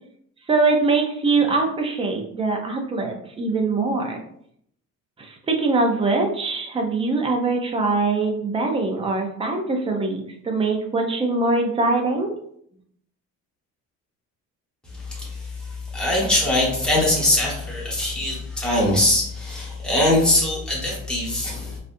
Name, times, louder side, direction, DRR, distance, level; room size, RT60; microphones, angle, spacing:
voice 1, 0.5-4.2 5.2-12.3, right 3 dB, 20° right, 3 dB, 0.4 m, -22 dB
voice 2, 15.1-15.5 15.9-21.8, left 1 dB, 5° left, -5 dB, 1.0 m, -22 dB
4.1 x 2.4 x 2.5 m, 0.69 s
cardioid pair, 160°, 32 cm